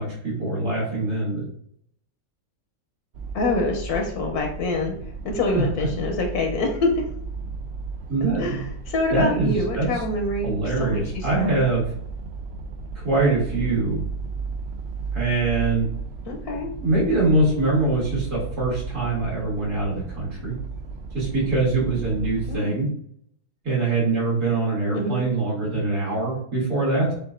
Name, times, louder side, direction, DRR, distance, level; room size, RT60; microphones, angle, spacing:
voice 1, 0.0-1.4 5.5-5.6 8.1-8.6 9.1-9.9 10.4-11.9 13.0-14.0 15.1-15.9 16.8-20.6 21.1-22.9 23.6-27.1, right 2 dB, 80° right, -8 dB, 2.6 m, -23 dB
sound 1, 3.1-22.6, right 4 dB, 60° right, 0.7 m, -34 dB
voice 2, 3.3-4.9 5.2-7.0 8.4-11.6 16.3-16.7 22.5-22.8 24.9-25.2, left 2 dB, 80° left, 2 dB, 1.3 m, -26 dB
7.3 x 2.5 x 2.5 m, 0.66 s
omnidirectional pair, 1.6 m